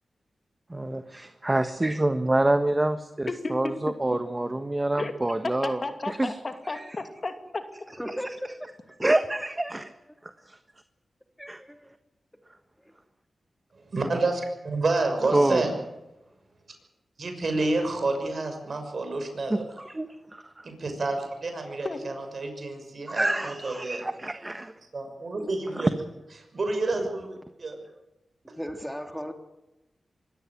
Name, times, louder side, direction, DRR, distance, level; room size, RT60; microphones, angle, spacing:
voice 1, 0.7-5.8 6.2-6.3 6.7-6.8 8.1-8.2 9.0-9.9 10.2-10.6 11.5-11.6 15.3-15.6 19.5-20.7 23.1-24.7 25.8-25.9, right 1 dB, 25° right, 9 dB, 1.4 m, -27 dB
voice 2, 5.6-7.6 21.8-22.1, left 3 dB, 50° left, 6 dB, 2.7 m, -33 dB
voice 3, 8.0-8.7 11.4-11.9 28.6-29.3, equal, ahead, 5 dB, 3.4 m, -36 dB
voice 4, 13.7-15.7 17.2-19.7 20.6-24.0 24.9-25.9 26.5-27.8, right 2 dB, 60° right, 5 dB, 6.1 m, -29 dB
24.0 x 14.0 x 9.7 m, 0.96 s
cardioid pair, 45°, 0 cm